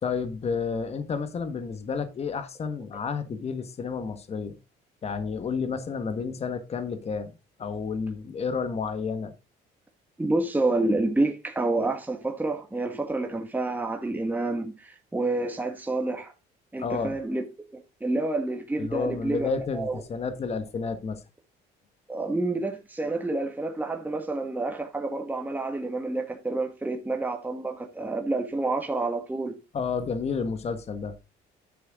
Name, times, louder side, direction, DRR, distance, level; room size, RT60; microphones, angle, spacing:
voice 1, 0.0-4.6 5.0-7.3 7.6-9.3 16.8-17.2 18.8-21.2 29.7-31.1, left 5 dB, 40° left, 1.5 m, -31 dB
voice 2, 10.2-16.3 16.7-17.4 17.7-20.0 22.1-29.6, right 2 dB, 10° right, 1.5 m, -28 dB
9.9 x 6.9 x 3.6 m
cardioid pair, 110°, 17 cm